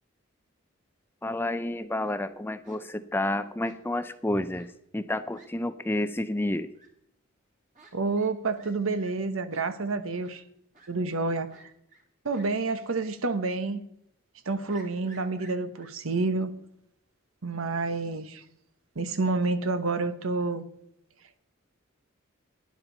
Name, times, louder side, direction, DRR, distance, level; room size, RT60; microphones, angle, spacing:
voice 1, 1.2-4.7 4.9-6.7, left 1 dB, 10° left, 0.4 m, -30 dB
Fowl, 1.8-2.2 2.6-2.8 3.6-4.1 4.5-4.7 5.0-5.1 5.3-5.5 5.9-6.0 6.7-6.9 7.7-7.9 8.2-8.3 8.6-8.7 9.0-9.1 9.5-9.6 10.2-10.3 10.7-10.9 11.5-12.0 12.3-12.5 12.9-13.1 13.4-13.5 14.7-15.9, right 3 dB, 35° right, 2.6 m, -54 dB
voice 2, 7.9-10.4 10.9-11.5 12.2-13.8 14.5-16.5 17.4-18.4 19.0-20.6, right 3 dB, 80° right, 1.0 m, -29 dB
11.5 x 10.5 x 4.0 m
head